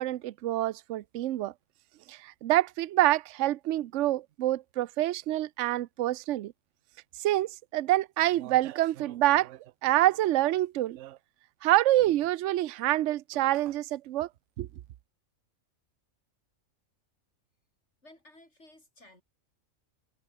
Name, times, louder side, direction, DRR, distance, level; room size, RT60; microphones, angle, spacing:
voice 1, 0.0-1.5 2.1-6.5 7.2-11.2 11.6-14.3 14.6-14.7, right 15 dB, 70° right, 0.9 m, -27 dB
voice 2, 18.0-19.2, left 1 dB, 55° left, 7.0 m, -55 dB
omnidirectional pair, 1.4 m